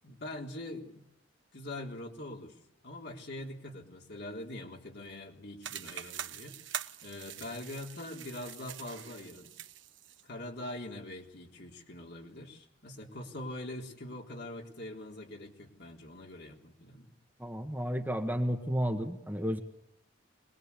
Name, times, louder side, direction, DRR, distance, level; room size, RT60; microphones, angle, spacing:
voice 1, 0.0-1.1 1.5-2.6 2.8-6.6 7.0-9.5 10.2-17.1, left 1 dB, 60° left, 0 dB, 3.7 m, -43 dB
sound 1, 5.6-10.2, right 10 dB, 75° right, 0.9 m, -44 dB
voice 2, 17.4-19.6, equal, 10° right, 4 dB, 1.5 m, -32 dB
25.0 x 21.0 x 8.4 m, 0.82 s
head